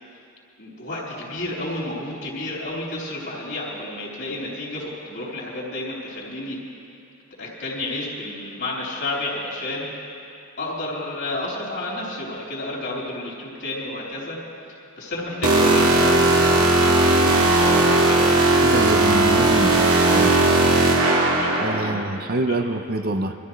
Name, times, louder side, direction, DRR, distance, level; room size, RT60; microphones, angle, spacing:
voice 1, 0.6-6.6 7.4-9.9 10.6-14.4 14.7-18.3 21.3-22.7, left 2 dB, 55° left, -5 dB, 3.9 m, -31 dB
sound 1, 15.4-21.9, right 2 dB, 90° right, 1.9 m, -17 dB
voice 2, 18.6-20.4 21.6-23.4, right 2 dB, 45° right, 7 dB, 0.6 m, -26 dB
24.0 x 14.0 x 3.2 m, 2.6 s
head